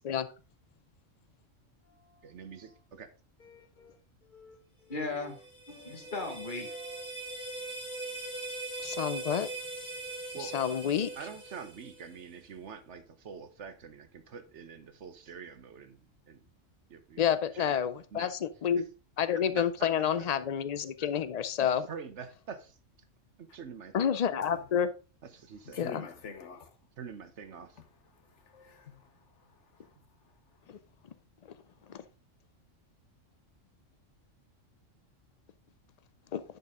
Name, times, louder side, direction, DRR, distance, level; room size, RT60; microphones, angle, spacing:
voice 1, 2.2-3.1 10.3-10.6 11.0-16.0 16.3-16.4 16.9-17.2 17.5-17.8 18.1-18.3 19.6-19.7 20.0-20.1 21.6-22.7 23.4-24.2 25.3-25.8 27.0-27.8, right 6 dB, 65° right, 1.2 m, -45 dB
voice 2, 3.4-3.9 4.3-4.6 4.8-5.4 5.7-7.1, left 3 dB, 40° left, 1.8 m, -39 dB
sound 1, 5.2-12.2, right 2 dB, 5° right, 4.0 m, -41 dB
voice 3, 8.8-9.5 10.4-11.1 17.2-18.8 19.2-21.9 23.9-24.9 25.8-26.0 36.3-36.4, left 8 dB, 85° left, 0.3 m, -29 dB
voice 4, 25.6-26.7 27.8-30.0 30.2-30.3 30.7-30.8 31.8-32.0, left 5 dB, 65° left, 1.3 m, -48 dB
10.5 x 5.4 x 3.7 m
omnidirectional pair, 1.3 m